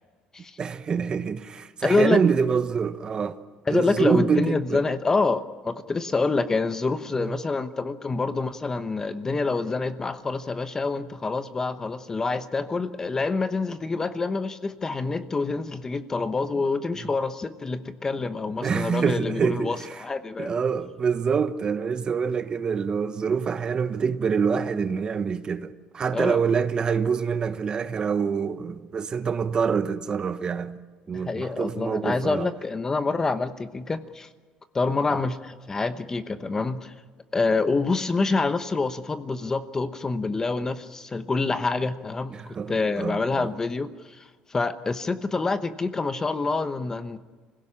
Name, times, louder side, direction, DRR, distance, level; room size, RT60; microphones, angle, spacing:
voice 1, 0.6-3.4 3.7-4.8 7.2-7.3 18.6-20.0 20.4-30.8 31.1-32.5 42.3-42.7 43.0-43.5, right 6 dB, 35° right, 1.1 m, -26 dB
voice 2, 1.8-2.2 3.7-20.5 26.1-26.4 31.1-34.3 34.7-36.9 37.3-47.2, left 3 dB, 20° left, 1.0 m, -27 dB
25.5 x 16.5 x 10.0 m
cardioid pair, 120°, 3 cm